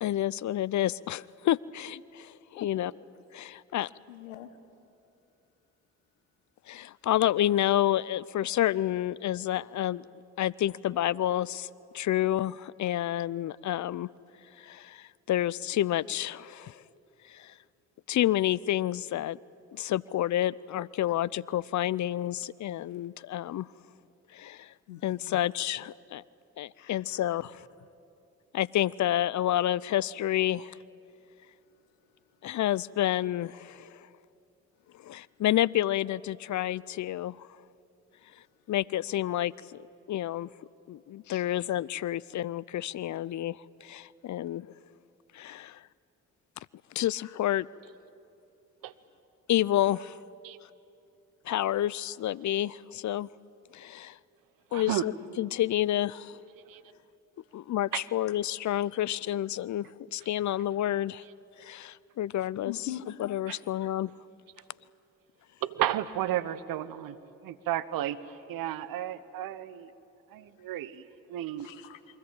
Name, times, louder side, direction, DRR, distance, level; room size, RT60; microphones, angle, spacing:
voice 1, 0.0-2.9 3.3-3.9 6.7-10.0 10.4-11.7 11.9-14.1 14.6-16.8 17.3-17.5 18.1-19.4 19.7-23.7 24.3-24.7 25.0-26.2 26.6-27.6 28.5-30.8 32.4-34.0 35.0-37.5 38.7-39.8 40.1-40.5 40.9-44.7 45.3-45.8 46.9-47.7 49.5-50.2 51.5-53.3 53.7-54.2 54.7-55.1 55.4-56.4 57.5-61.2 61.6-62.7 63.2-64.1, left 13 dB, 50° left, 22 dB, 0.6 m, -29 dB
voice 2, 4.1-4.5 24.9-25.0 26.8-27.0 41.2-41.4 62.6-63.0 71.6-72.1, left 12 dB, 90° left, 13 dB, 1.2 m, -41 dB
voice 3, 54.7-55.0 56.6-56.8 57.9-58.0 63.5-63.6 65.6-67.2 67.4-69.9 70.3-71.7, right 12 dB, 65° right, 15 dB, 1.2 m, -33 dB
28.0 x 23.0 x 8.9 m, 2.7 s
hypercardioid pair, 45°, 37 cm